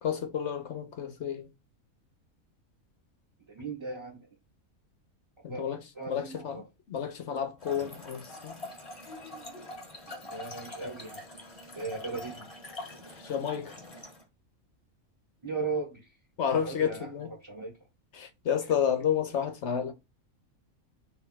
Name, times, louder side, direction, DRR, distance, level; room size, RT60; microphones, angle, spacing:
voice 1, 0.0-1.5 5.4-5.8 6.1-8.5 13.1-13.8 16.4-17.3 18.1-19.9, left 8 dB, 60° left, 0.9 m, -31 dB
voice 2, 3.5-4.3 5.5-5.6 5.9-6.6 10.2-11.2 11.7-12.5 15.4-16.1 16.6-17.1 17.4-17.7, right 4 dB, 20° right, 1.3 m, -37 dB
Trickle dribble / Fill (with liquid), 7.6-14.2, left 2 dB, 25° left, 1.2 m, -44 dB
3.4 x 2.7 x 4.5 m
omnidirectional pair, 1.5 m